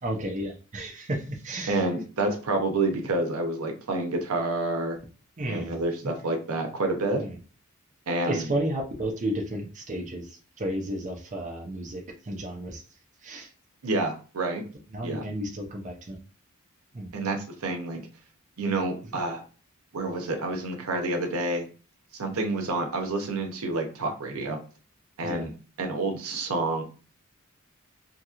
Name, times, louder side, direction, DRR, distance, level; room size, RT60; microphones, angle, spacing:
voice 1, 0.0-1.9 5.4-6.2 7.2-7.4 8.3-12.8 13.2-13.5 14.9-16.2 16.9-17.1 19.1-19.2 25.2-25.5, right 1 dB, 35° right, 1 dB, 0.5 m, -33 dB
voice 2, 1.7-5.0 5.5-7.2 8.1-8.5 13.8-14.6 15.0-15.2 17.1-18.0 18.6-19.4 19.9-21.7 22.1-24.6 25.2-25.5 25.8-26.8, right 2 dB, 80° right, 4 dB, 0.7 m, -28 dB
2.9 x 2.7 x 2.4 m, 0.37 s
head